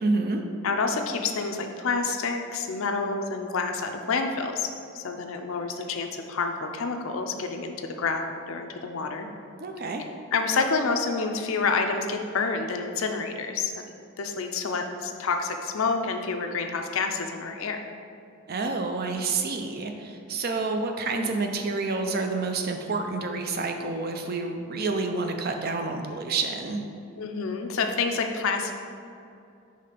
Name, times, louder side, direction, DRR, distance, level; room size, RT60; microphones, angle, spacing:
voice 1, 0.0-0.4 9.6-10.0 18.5-26.8, right 3 dB, 45° right, 4 dB, 0.4 m, -28 dB
voice 2, 0.6-9.3 10.0-17.8 27.2-28.7, left 4 dB, 65° left, 5 dB, 0.5 m, -28 dB
5.6 x 3.3 x 5.1 m, 2.6 s
head